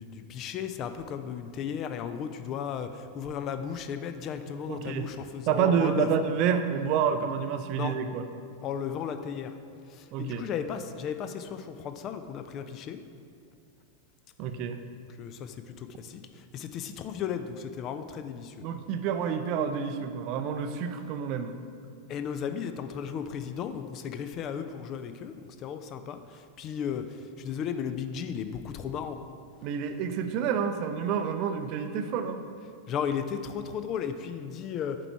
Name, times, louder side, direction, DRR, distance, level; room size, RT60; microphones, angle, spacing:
voice 1, 0.0-2.9 3.2-6.1 7.8-7.9 8.6-9.5 10.2-13.0 15.2-15.5 16.1-16.2 16.5-18.5 22.1-26.2 26.6-27.1 27.4-29.2 32.9-35.0, left 7 dB, 35° left, 9 dB, 0.4 m, -34 dB
voice 2, 4.6-5.1 5.5-8.3 10.1-10.5 14.4-14.8 18.6-21.5 29.6-32.4, right 7 dB, 40° right, 8 dB, 0.4 m, -28 dB
7.7 x 4.6 x 4.5 m, 2.3 s
figure-of-eight pair, 90°, 0 cm